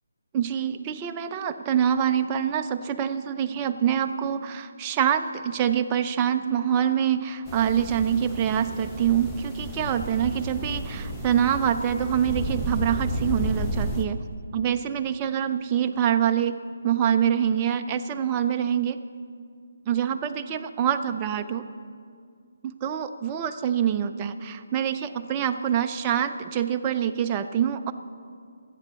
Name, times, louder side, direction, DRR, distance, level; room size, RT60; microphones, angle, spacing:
voice 1, 0.3-14.2 14.5-16.5 16.8-19.0 19.9-21.7 22.6-27.9, right 9 dB, 25° right, 7 dB, 0.6 m, -25 dB
sound 1, 7.5-14.0, equal, 5° left, 1.1 m, -32 dB
14.0 x 8.6 x 6.9 m, 2.2 s
figure-of-eight pair, 150°, 0 cm